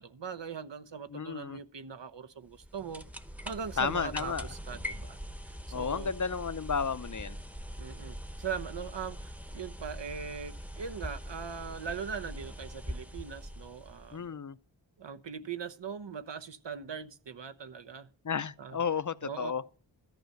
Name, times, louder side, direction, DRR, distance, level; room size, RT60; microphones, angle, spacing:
voice 1, 0.0-3.0 3.4-5.2 5.5-6.1 7.8-14.3 15.0-18.1 18.6-18.8 19.2-19.5, right 6 dB, 65° right, 1.0 m, -40 dB
voice 2, 1.1-1.6 3.8-4.5 5.7-7.4 14.1-14.6 18.2-19.6, left 6 dB, 40° left, 0.7 m, -32 dB
sound 1, 2.5-14.3, equal, 5° right, 1.0 m, -42 dB
14.0 x 5.6 x 9.2 m
wide cardioid pair, 75°, 47 cm